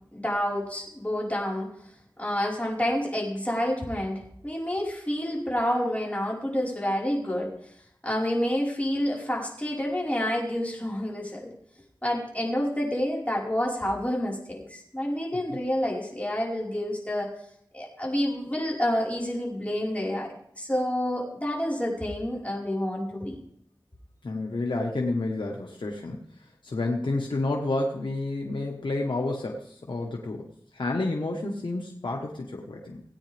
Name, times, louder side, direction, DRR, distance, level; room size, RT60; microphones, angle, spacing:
voice 1, 0.1-1.7 2.2-7.5 8.0-11.5 12.0-17.3 17.7-23.4, left 1 dB, 15° left, -3 dB, 4.9 m, -28 dB
voice 2, 24.2-26.2 26.6-33.0, left 2 dB, 85° left, 0 dB, 1.4 m, -30 dB
18.0 x 8.9 x 3.5 m, 0.71 s
wide cardioid pair, 40°, 8 cm